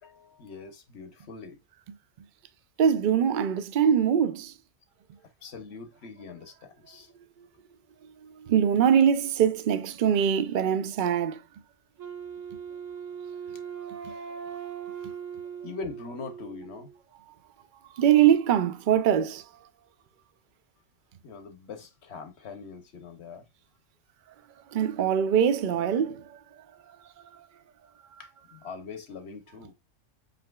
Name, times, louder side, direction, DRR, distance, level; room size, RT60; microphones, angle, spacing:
voice 1, 0.0-1.6 5.4-7.1 12.7-12.8 15.6-16.9 21.2-23.5 28.2-29.7, left 4 dB, 60° left, 1.0 m, -42 dB
voice 2, 2.8-4.5 7.4-7.5 8.0-11.4 13.9-14.2 17.9-19.5 24.7-27.0 27.3-27.5, right 9 dB, 60° right, 0.5 m, -23 dB
Wind instrument woodwind instrument, 12.0-17.0, right 7 dB, 80° right, 1.4 m, -39 dB
7.7 x 2.9 x 2.3 m
omnidirectional pair, 1.3 m